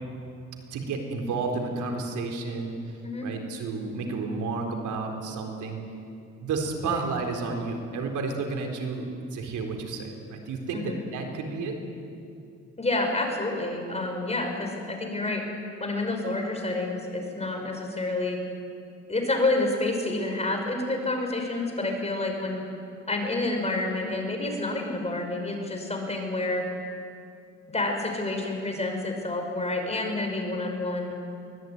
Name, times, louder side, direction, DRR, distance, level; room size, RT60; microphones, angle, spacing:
voice 1, 0.7-2.8 3.2-5.8 6.4-9.0 9.3-11.7, right 4 dB, 80° right, 3 dB, 4.0 m, -31 dB
voice 2, 12.8-15.4 15.8-18.4 19.1-22.6 23.1-26.7 27.7-31.2, left 2 dB, 20° left, 3 dB, 5.7 m, -29 dB
23.5 x 18.5 x 9.6 m, 2.5 s
cardioid pair, 90°, 30 cm